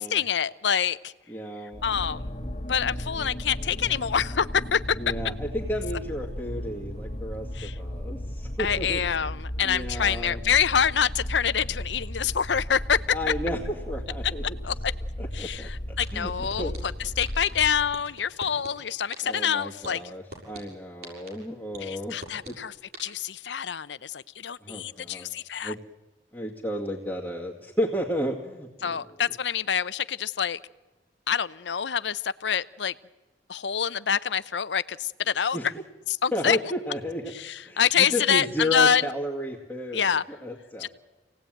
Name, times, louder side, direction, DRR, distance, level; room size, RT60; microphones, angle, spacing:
voice 1, 0.0-1.1 1.8-2.3 2.7-5.0 7.5-7.7 8.6-13.0 14.6-14.9 15.3-16.7 17.0-20.0 21.8-22.7 23.0-25.7 28.8-30.6 31.3-32.9 33.5-35.6 36.1-36.6 37.3-39.1 39.9-40.2 40.8-40.9, left 7 dB, 80° left, 16 dB, 0.7 m, -26 dB
voice 2, 1.3-1.8 5.0-9.3 9.6-10.4 13.1-14.6 15.2-16.8 19.2-22.2 22.4-22.6 24.6-25.3 25.6-25.8 26.3-29.0 35.5-35.7 36.3-37.3 37.6-40.9, equal, 10° left, -3 dB, 2.1 m, -33 dB
sound 1, 1.7-18.0, equal, 35° left, 1.8 m, -35 dB
sound 2, 15.6-15.7 16.0-16.8 17.2-17.5 17.9-18.7 19.1-19.4 19.8-20.6 21.0-21.3 21.7-22.5 22.9-23.0, right 2 dB, 60° right, 6.9 m, -40 dB
27.0 x 18.0 x 9.1 m, 1.2 s
head